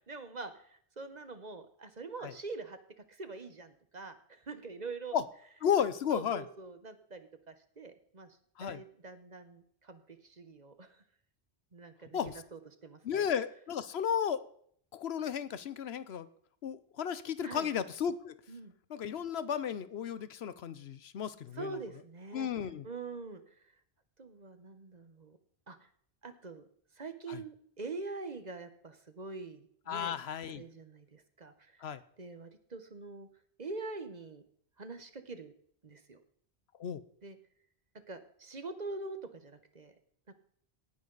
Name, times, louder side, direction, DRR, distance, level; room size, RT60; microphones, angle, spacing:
voice 1, 0.1-2.8 3.1-5.2 6.1-8.3 8.6-11.0 11.7-13.2 17.4-17.7 18.5-18.7 21.5-22.5 22.8-23.4 24.2-25.4 25.7-25.8 26.2-26.6 27.0-30.1 30.5-31.8 32.2-33.3 33.6-34.4 34.8-35.5 35.8-36.2 37.2-37.4 38.1-39.9, right 3 dB, 40° right, 9 dB, 1.2 m, -44 dB
voice 2, 5.6-6.4 8.6-8.8 12.1-12.4 13.0-14.4 14.9-16.3 16.6-18.4 18.9-21.8 22.3-22.9 27.3-27.4 29.9-30.6 31.8-32.0 36.8-37.0, left 8 dB, 75° left, 15 dB, 1.0 m, -34 dB
18.0 x 9.8 x 4.0 m, 0.62 s
omnidirectional pair, 1.1 m